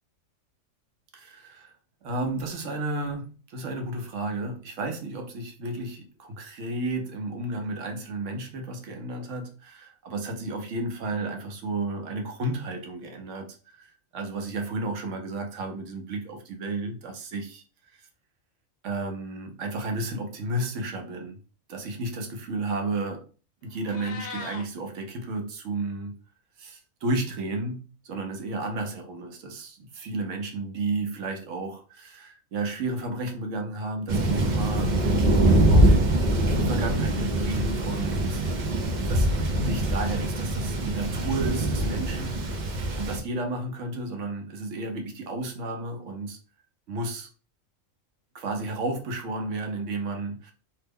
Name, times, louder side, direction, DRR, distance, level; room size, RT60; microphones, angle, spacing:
voice 1, 1.1-1.7 2.0-17.6 17.9-18.1 18.8-21.4 21.7-23.3 23.6-26.1 26.6-35.0 35.7-35.9 36.5-38.5 39.1-39.3 39.6-42.5 43.0-46.4 46.9-47.3 48.3-50.5, right 2 dB, 75° right, 1.0 m, -32 dB
Meow, 23.7-24.6, left 4 dB, 55° left, 0.5 m, -39 dB
Thunder, 34.1-43.2, right 1 dB, 55° right, 0.5 m, -23 dB
2.9 x 2.1 x 3.4 m
omnidirectional pair, 1.3 m